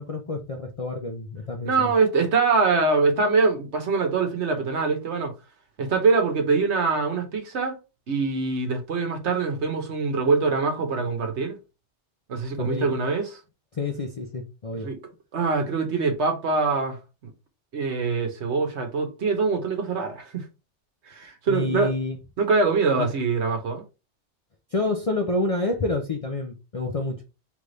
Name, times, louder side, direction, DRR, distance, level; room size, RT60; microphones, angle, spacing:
voice 1, 0.0-1.9 12.5-12.9 13.7-14.9 21.5-22.2 23.0-23.1 24.7-27.2, left 2 dB, 40° left, 0.5 m, -28 dB
voice 2, 1.6-5.3 5.8-7.8 8.1-11.6 12.3-13.3 14.8-15.0 15.3-17.0 17.7-20.4 21.1-21.9 22.4-23.8, right 4 dB, 75° right, 1.2 m, -23 dB
3.4 x 3.3 x 3.8 m
omnidirectional pair, 1.2 m